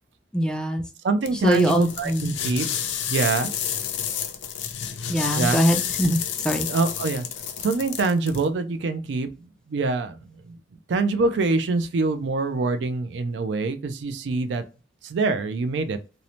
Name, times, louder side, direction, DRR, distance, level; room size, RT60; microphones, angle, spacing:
voice 1, 0.3-0.8 1.4-2.3 5.1-6.2 6.4-6.7, equal, 5° left, 0.4 m, -22 dB
voice 2, 1.0-2.7 3.1-3.5 5.3-5.6 6.7-7.3 7.6-9.3 9.7-10.2 10.5-10.6 10.9-14.6 15.0-16.0, right 3 dB, 70° right, 0.4 m, -24 dB
sound 1, 1.2-8.5, left 9 dB, 80° left, 0.4 m, -30 dB
2.6 x 2.0 x 2.9 m
head